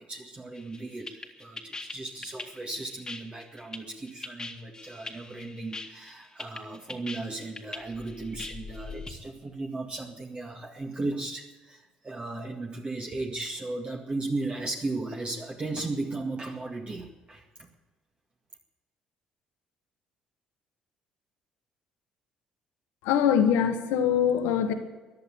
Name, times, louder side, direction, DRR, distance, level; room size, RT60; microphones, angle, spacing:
voice 1, 0.0-17.7, right 2 dB, 30° right, 1 dB, 2.0 m, -36 dB
sound 1, 0.6-9.1, left 3 dB, 20° left, 2.0 m, -41 dB
voice 2, 23.0-24.7, left 8 dB, 70° left, 7 dB, 1.7 m, -23 dB
14.5 x 11.0 x 8.6 m, 1.2 s
hypercardioid pair, 50°, 3 cm